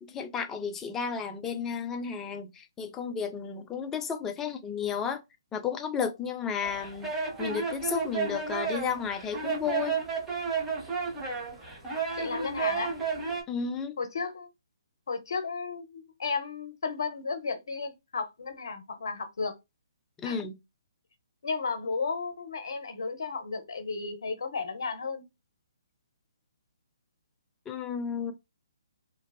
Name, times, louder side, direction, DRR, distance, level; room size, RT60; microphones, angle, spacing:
voice 1, 0.0-5.2 5.5-7.1 7.4-10.0 13.5-14.0 20.2-20.5 27.7-28.3, left 6 dB, 15° left, 0.4 m, -33 dB
sound 1, 6.6-13.4, right 5 dB, 10° right, 0.8 m, -32 dB
voice 2, 12.1-13.0 14.0-14.5 15.1-19.6 20.2-20.4 21.4-25.2, left 4 dB, 65° left, 0.7 m, -33 dB
2.6 x 2.3 x 2.2 m
figure-of-eight pair, 140°, 2 cm